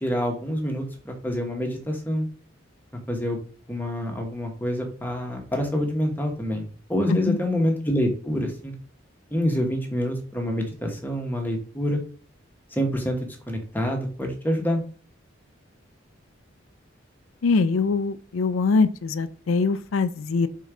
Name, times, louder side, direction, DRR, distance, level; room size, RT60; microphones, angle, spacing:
voice 1, 0.0-2.3 3.1-3.4 3.7-8.7 9.3-12.0 12.7-14.8, equal, 10° left, 1.2 m, -27 dB
voice 2, 17.4-20.5, left 4 dB, 85° left, 0.5 m, -23 dB
5.2 x 3.8 x 4.9 m
head